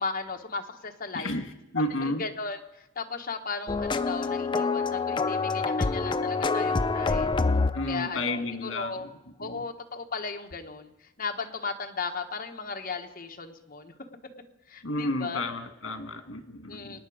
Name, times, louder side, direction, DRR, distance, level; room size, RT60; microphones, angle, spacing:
voice 1, 0.0-1.3 2.0-7.4 7.9-9.1 9.4-10.9 11.2-13.9 14.7-15.4 16.7-17.0, left 4 dB, 50° left, 3 dB, 1.3 m, -36 dB
voice 2, 1.1-2.2 7.7-9.1 9.4-9.6 14.8-17.0, left 1 dB, 85° left, 6 dB, 1.6 m, -32 dB
sound 1, 3.7-8.1, left 4 dB, 25° left, 0.5 m, -26 dB
24.5 x 9.8 x 5.0 m, 0.88 s
head